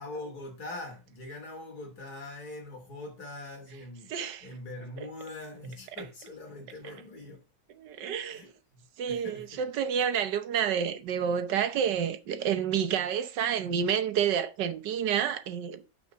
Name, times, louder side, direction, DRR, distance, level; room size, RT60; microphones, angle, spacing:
voice 1, 0.0-4.1 4.4-7.4 8.3-9.6, left 2 dB, 60° left, 3.3 m, -42 dB
voice 2, 4.1-4.5 7.8-8.4 9.0-15.8, right 8 dB, 80° right, 1.5 m, -29 dB
7.3 x 6.0 x 5.5 m
omnidirectional pair, 1.9 m